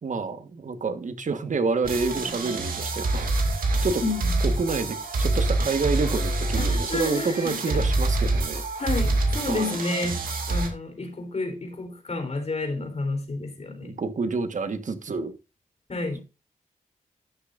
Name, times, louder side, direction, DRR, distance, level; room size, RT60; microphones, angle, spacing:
voice 1, 0.0-4.0 4.4-8.6 9.5-9.7 13.8-15.3, right 4 dB, 60° right, 1.5 m, -28 dB
sound 1, 1.8-10.7, right 2 dB, 85° right, 2.4 m, -26 dB
voice 2, 4.0-4.3 6.6-7.8 8.8-10.2 10.5-13.9 15.9-16.2, left 3 dB, 50° left, 3.8 m, -30 dB
12.0 x 8.5 x 2.6 m
cardioid pair, 50°, 14 cm